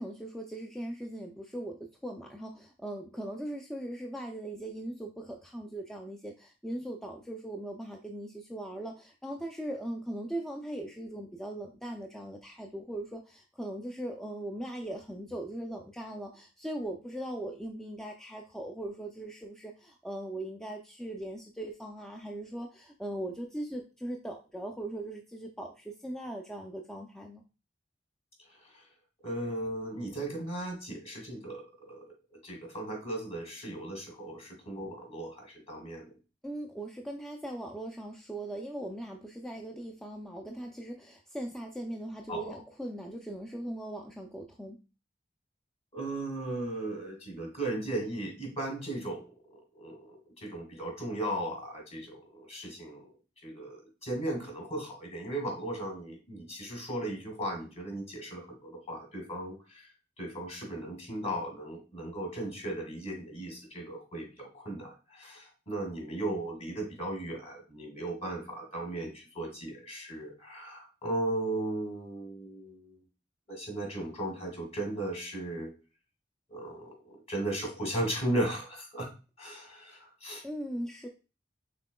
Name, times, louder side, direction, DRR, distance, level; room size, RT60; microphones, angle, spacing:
voice 1, 0.0-27.4 36.4-44.8 80.4-81.1, right 1 dB, 5° left, 1 dB, 0.4 m, -39 dB
voice 2, 29.2-32.0 32.3-36.1 42.3-42.5 45.9-49.3 49.7-53.1 53.4-59.9 60.2-73.0 73.5-75.7 76.5-79.1 79.4-80.4, right 1 dB, 40° left, 1 dB, 1.9 m, -36 dB
5.9 x 3.6 x 2.2 m, 0.33 s
head